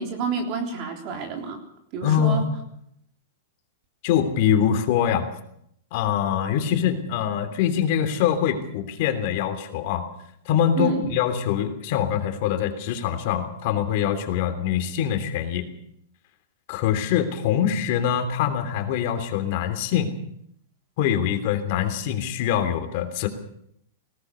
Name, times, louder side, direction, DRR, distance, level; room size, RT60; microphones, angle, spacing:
voice 1, 0.0-1.6 1.9-2.5 10.8-11.0, right 5 dB, 35° right, 3 dB, 3.5 m, -28 dB
voice 2, 2.0-2.4 4.0-5.3 5.9-10.1 10.4-15.7 16.7-20.1 21.0-23.3, left 9 dB, 45° left, 7 dB, 3.1 m, -24 dB
20.5 x 18.5 x 7.0 m, 0.72 s
supercardioid pair, 160°, 0 cm